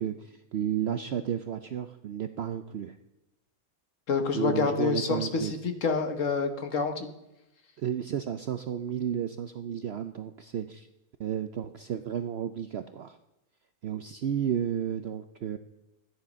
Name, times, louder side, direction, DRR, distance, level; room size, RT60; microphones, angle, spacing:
voice 1, 0.0-3.0 4.3-5.5 7.8-10.9 11.2-13.2 13.8-15.6, right 9 dB, 65° right, 9 dB, 0.6 m, -32 dB
voice 2, 4.1-7.1, left 5 dB, 55° left, 6 dB, 1.5 m, -28 dB
13.0 x 9.9 x 5.2 m, 0.94 s
omnidirectional pair, 1.6 m